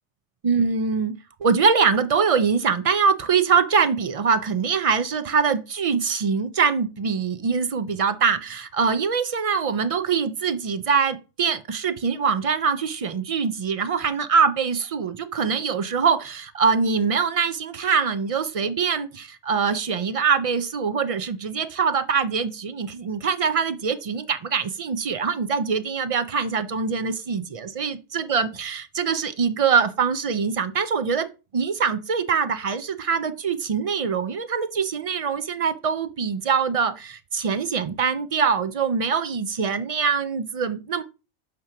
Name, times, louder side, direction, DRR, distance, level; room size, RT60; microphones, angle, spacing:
voice 1, 0.4-1.1 1.4-41.0, right 6 dB, 60° right, 0.3 m, -23 dB
8.4 x 2.9 x 5.8 m
omnidirectional pair, 1.2 m